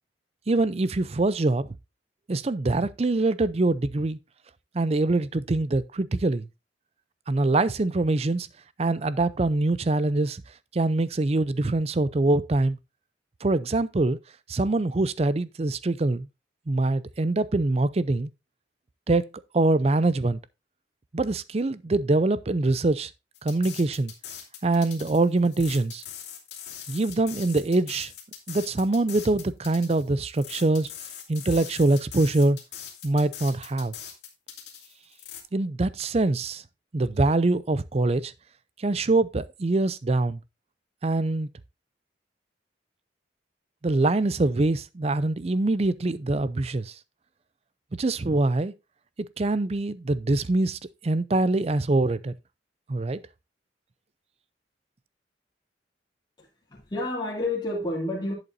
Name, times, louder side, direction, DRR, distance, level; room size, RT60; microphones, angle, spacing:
voice 1, 0.5-1.7 2.3-4.2 4.7-6.5 7.3-8.5 8.8-10.4 10.7-12.8 13.4-14.2 14.5-16.3 16.7-18.3 19.1-19.3 19.5-20.4 21.1-23.1 23.4-24.1 24.6-26.0 26.9-28.1 28.5-30.9 31.3-32.6 33.0-33.9 35.5-36.6 36.9-38.3 38.8-40.4 41.0-41.5 43.8-46.9 47.9-48.7 49.4-52.3 52.9-53.2, right 2 dB, 35° right, 0.5 m, -24 dB
sound 1, 23.3-35.4, left 9 dB, 65° left, 2.7 m, -42 dB
voice 2, 56.4-58.3, left 2 dB, 25° left, 3.0 m, -30 dB
11.0 x 8.1 x 2.6 m
head